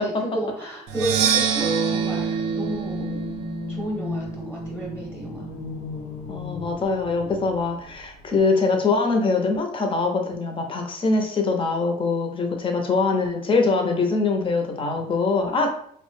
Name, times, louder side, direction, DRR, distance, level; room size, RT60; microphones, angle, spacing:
voice 1, 0.0-3.3 3.7-5.5, right 1 dB, 5° right, -2 dB, 0.9 m, -32 dB
Percussion, 0.9-4.7, right 8 dB, 90° right, 0.4 m, -26 dB
sound 1, 1.6-5.6, right 4 dB, 35° right, 0.5 m, -32 dB
sound 2, 2.4-8.4, left 4 dB, 80° left, 0.5 m, -36 dB
voice 2, 6.3-15.7, left 3 dB, 30° left, 4 dB, 0.6 m, -23 dB
2.9 x 2.1 x 3.1 m, 0.66 s
cardioid pair, 110°, 17 cm